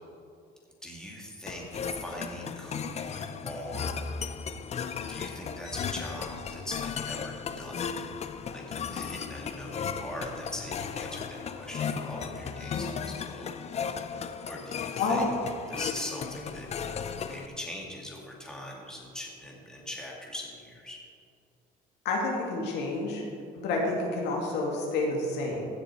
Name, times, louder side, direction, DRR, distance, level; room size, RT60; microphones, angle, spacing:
voice 1, 0.8-4.1 4.8-7.9 8.5-13.5 14.5-15.3 15.7-17.0 17.2-21.0, left 1 dB, 5° left, -2 dB, 2.3 m, -41 dB
sound 1, 1.5-17.5, left 6 dB, 40° left, 0.6 m, -36 dB
voice 2, 22.0-23.2 23.5-25.7, left 2 dB, 85° left, -1 dB, 2.3 m, -29 dB
15.5 x 6.8 x 4.5 m, 2.4 s
cardioid pair, 110°, 17 cm